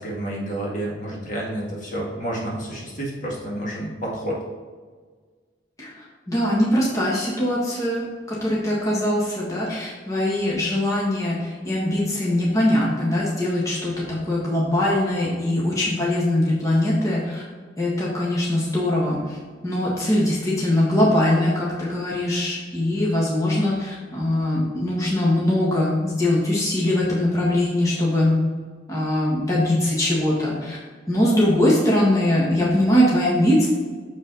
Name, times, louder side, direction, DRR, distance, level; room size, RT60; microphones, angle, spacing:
voice 1, 0.0-4.4, right 1 dB, 45° left, -3 dB, 1.7 m, -29 dB
voice 2, 6.3-17.4 17.8-19.4 19.6-28.4 28.9-30.8 31.1-33.7, left 1 dB, 20° left, -6 dB, 1.5 m, -21 dB
7.1 x 4.9 x 4.0 m, 1.5 s
head